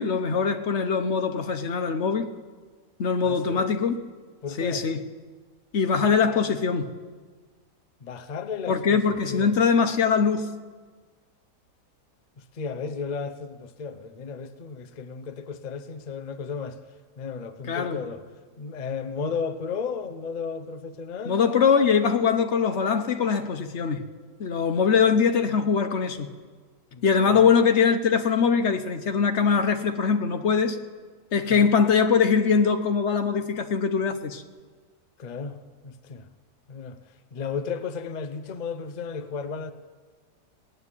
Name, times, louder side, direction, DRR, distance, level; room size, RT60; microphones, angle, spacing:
voice 1, 0.0-2.3 3.0-4.0 4.6-5.0 5.7-6.9 8.7-10.5 17.7-18.0 21.3-24.0 24.4-26.3 27.0-30.8 31.3-34.4, left 6 dB, 50° left, 1.1 m, -22 dB
voice 2, 3.2-3.7 4.4-4.9 8.0-9.6 12.5-16.8 17.2-18.2 18.6-21.4 26.9-27.5 31.5-31.7 35.2-35.6 35.8-36.3 36.7-37.0 37.3-39.7, left 5 dB, 65° left, 0.4 m, -34 dB
18.5 x 7.9 x 9.7 m
omnidirectional pair, 1.8 m